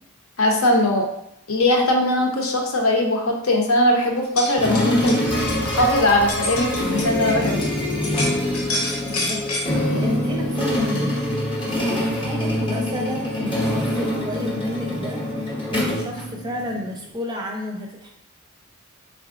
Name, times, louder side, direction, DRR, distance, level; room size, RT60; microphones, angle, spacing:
voice 1, 0.4-1.1 1.5-5.2 5.6-7.6, left 1 dB, 65° left, 0 dB, 0.8 m, -20 dB
sound 1, 4.2-7.7 8.0-9.7, left 2 dB, 85° left, 1.1 m, -29 dB
sound 2, 4.6-16.8, left 1 dB, 20° left, 0.7 m, -24 dB
voice 2, 9.0-18.1, left 1 dB, 20° right, 0 dB, 0.5 m, -32 dB
4.0 x 3.6 x 2.5 m, 0.75 s
head